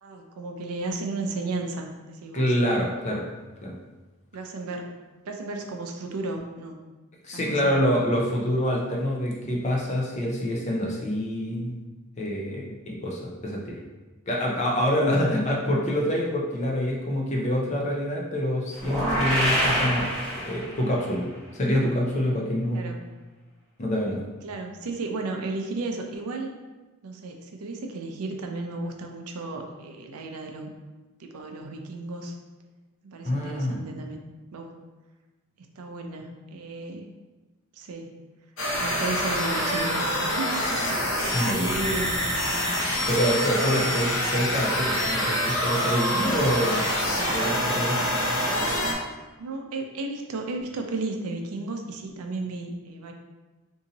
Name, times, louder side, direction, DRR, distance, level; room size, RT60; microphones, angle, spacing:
voice 1, 0.0-2.5 4.3-5.0 5.3-6.8 7.3-7.7 22.7-23.0 24.4-26.5 27.0-30.7 31.2-32.3 33.0-34.2 34.5-34.8 35.6-37.1 37.7-38.2 38.8-42.2 43.8-44.5 49.4-53.1, right 3 dB, 85° right, 3 dB, 0.5 m, -34 dB
voice 2, 2.3-3.2 3.6-3.7 7.2-11.7 12.2-13.8 14.3-20.1 20.4-22.9 23.8-24.2 33.2-33.8 41.3-41.9 43.1-46.9 47.3-48.0, equal, 30° left, -2 dB, 0.5 m, -26 dB
sound 1, 18.8-21.0, equal, ahead, 1.1 m, -25 dB
sound 2, 38.6-48.9, equal, 70° left, 0.7 m, -26 dB
2.7 x 2.7 x 3.8 m, 1.2 s
head